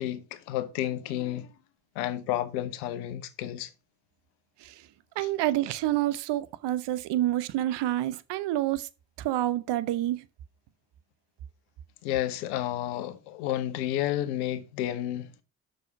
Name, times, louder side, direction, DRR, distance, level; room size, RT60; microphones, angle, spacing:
voice 1, 0.0-1.5 2.0-3.7 5.2-5.3 12.0-15.4, left 12 dB, 85° left, 0.9 m, -31 dB
voice 2, 5.2-8.9 9.2-10.2, right 14 dB, 65° right, 0.8 m, -28 dB
6.4 x 6.3 x 5.7 m
hypercardioid pair, 45°, 44 cm